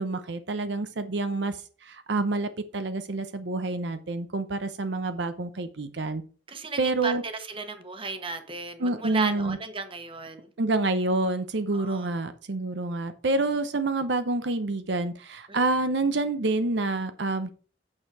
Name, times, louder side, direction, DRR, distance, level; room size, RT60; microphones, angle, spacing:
voice 1, 0.0-6.2 6.8-7.2 8.8-9.6 10.6-17.5, right 2 dB, 75° right, 0.8 m, -28 dB
voice 2, 6.5-10.5 11.7-12.1 15.5-15.6, right 4 dB, 30° right, 1.2 m, -34 dB
8.7 x 6.5 x 4.7 m
head